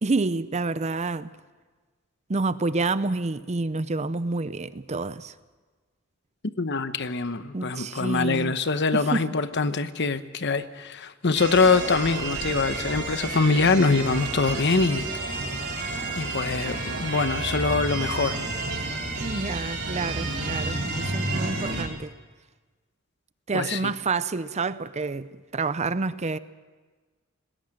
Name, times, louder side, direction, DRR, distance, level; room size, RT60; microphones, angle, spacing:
voice 1, 0.0-1.3 2.3-5.3 7.5-8.5 8.9-9.3 19.2-22.1 23.5-26.4, right 3 dB, 35° right, 0.6 m, -28 dB
voice 2, 6.6-15.1 16.2-18.4 23.5-23.9, left 4 dB, 55° left, 1.0 m, -24 dB
sound 1, 11.3-21.8, right 2 dB, 55° right, 3.7 m, -30 dB
20.0 x 17.0 x 9.0 m
head